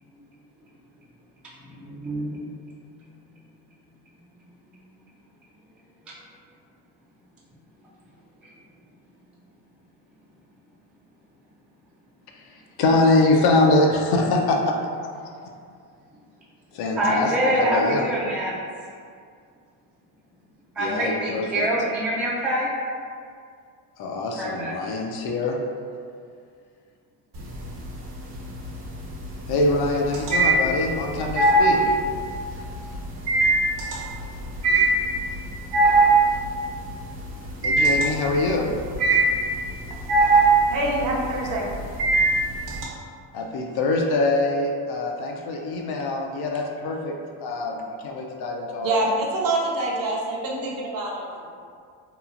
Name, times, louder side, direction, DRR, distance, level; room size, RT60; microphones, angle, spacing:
voice 1, 1.8-2.5 17.0-18.6 20.8-22.7 24.4-24.7, right 1 dB, 5° right, -6 dB, 0.4 m, -25 dB
voice 2, 12.5-14.7 16.7-18.1 20.8-21.7 24.0-25.6 29.5-32.0 37.6-38.7 43.3-49.1, left 2 dB, 55° left, 1 dB, 0.5 m, -24 dB
sound 1, 27.3-28.0 28.3-42.8, right 2 dB, 65° right, 1.1 m, -20 dB
voice 3, 40.7-41.7 48.8-51.4, right 2 dB, 45° right, -3 dB, 0.7 m, -25 dB
2.9 x 2.2 x 2.4 m, 2.2 s
supercardioid pair, 80°, 46 cm